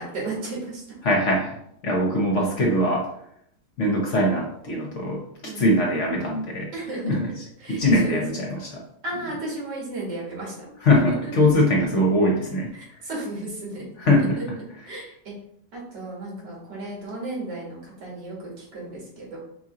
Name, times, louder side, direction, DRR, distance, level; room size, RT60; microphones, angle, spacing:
voice 1, 0.0-1.0 5.4-5.7 6.7-7.3 7.6-8.5 9.0-10.5 11.1-11.3 12.7-13.8 14.2-14.5 14.8-15.4 15.7-19.4, right 2 dB, 85° right, -4 dB, 2.3 m, -34 dB
voice 2, 1.0-1.6 1.8-3.0 3.8-5.2 5.5-6.7 7.0-7.3 7.7-8.8 10.8-12.7 14.0-14.4, left 1 dB, 55° left, -1 dB, 1.0 m, -21 dB
4.9 x 2.8 x 3.7 m, 0.72 s
omnidirectional pair, 1.8 m